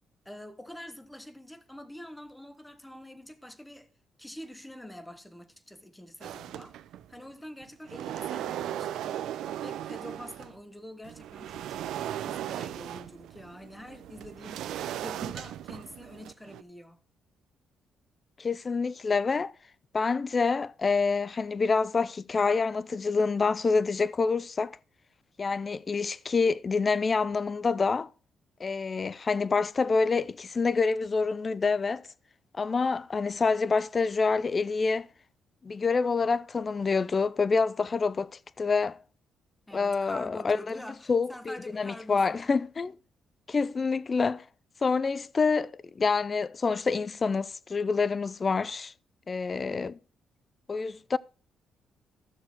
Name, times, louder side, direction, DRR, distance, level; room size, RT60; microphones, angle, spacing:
voice 1, 0.2-3.9 4.2-6.8 7.1-9.2 9.6-11.9 12.3-14.7 15.0-17.0 39.7-42.4, left 1 dB, 5° left, 1.3 m, -45 dB
sound 1, 6.2-7.2 7.6-10.6 11.0-16.6, right 11 dB, 80° right, 0.6 m, -37 dB
voice 2, 18.4-19.5 19.9-24.8 25.4-28.1 28.6-32.0 32.5-35.1 35.6-39.0 39.7-40.8 41.1-42.9 43.5-44.4 44.8-48.9 49.3-50.0 50.7-51.2, left 4 dB, 35° left, 0.5 m, -27 dB
13.0 x 6.9 x 4.5 m
cardioid pair, 90°, 0 cm